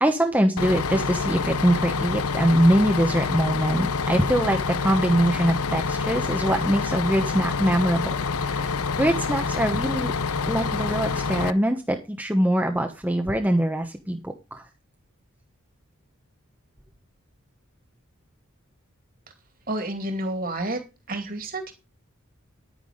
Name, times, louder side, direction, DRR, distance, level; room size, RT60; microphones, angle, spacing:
voice 1, 0.0-10.2 10.4-14.6, right 1 dB, 10° right, 4 dB, 1.1 m, -23 dB
Bus, 0.6-11.5, left 4 dB, 85° left, 0.8 m, -27 dB
voice 2, 19.7-20.8 21.1-21.7, right 1 dB, 40° right, 7 dB, 2.6 m, -29 dB
11.0 x 9.5 x 5.1 m, 0.28 s
head